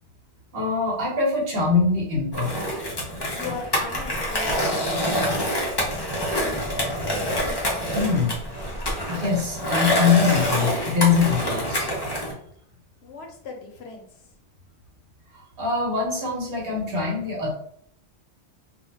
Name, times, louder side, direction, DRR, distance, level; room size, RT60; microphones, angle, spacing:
voice 1, 0.5-2.6 3.4-3.5 7.9-8.4 9.1-11.9 15.6-17.5, left 5 dB, 60° right, -2 dB, 1.0 m, -23 dB
Skateboard, 2.3-12.3, equal, 30° left, 0.5 m, -26 dB
voice 2, 3.3-4.8 13.0-14.1, left 4 dB, 75° left, 3 dB, 0.9 m, -37 dB
2.2 x 2.2 x 3.1 m, 0.66 s
omnidirectional pair, 1.1 m